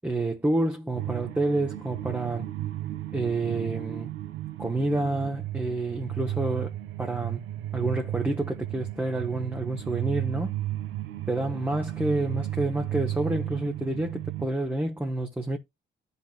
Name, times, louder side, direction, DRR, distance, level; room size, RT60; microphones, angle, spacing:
voice 1, 0.0-2.5 3.1-4.1 4.6-6.7 7.0-7.4 7.7-10.5 11.3-15.6, right 2 dB, 10° right, 0.9 m, -28 dB
sound 1, 0.9-14.5, right 14 dB, 85° right, 0.8 m, -34 dB
11.5 x 4.2 x 2.3 m
cardioid pair, 90°, 20 cm